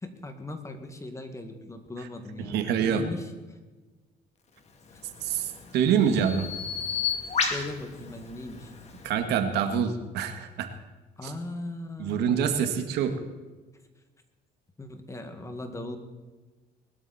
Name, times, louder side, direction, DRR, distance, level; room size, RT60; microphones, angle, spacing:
voice 1, 0.0-3.6 4.9-5.0 7.5-8.7 11.2-12.4 14.8-16.0, left 2 dB, 15° left, 6 dB, 2.1 m, -39 dB
voice 2, 2.4-3.1 5.2-6.5 9.0-10.7 11.2-11.3 12.0-13.2, right 7 dB, 80° right, 7 dB, 1.9 m, -26 dB
Bird vocalization bird call bird song, 4.9-9.1, left 6 dB, 40° left, 2.7 m, -33 dB
21.0 x 12.5 x 4.3 m, 1.2 s
cardioid pair, 110°, 17 cm